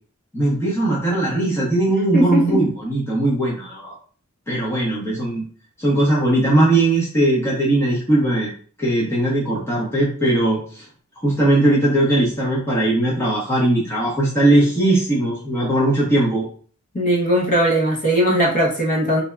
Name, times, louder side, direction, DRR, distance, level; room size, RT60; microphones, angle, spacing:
voice 1, 0.3-3.9 4.5-5.4 5.8-8.5 8.8-10.8 11.2-16.5, right 1 dB, 10° left, -6 dB, 0.7 m, -19 dB
voice 2, 2.1-2.6 16.9-19.2, equal, 35° left, -3 dB, 0.9 m, -18 dB
3.2 x 2.7 x 2.3 m, 0.43 s
head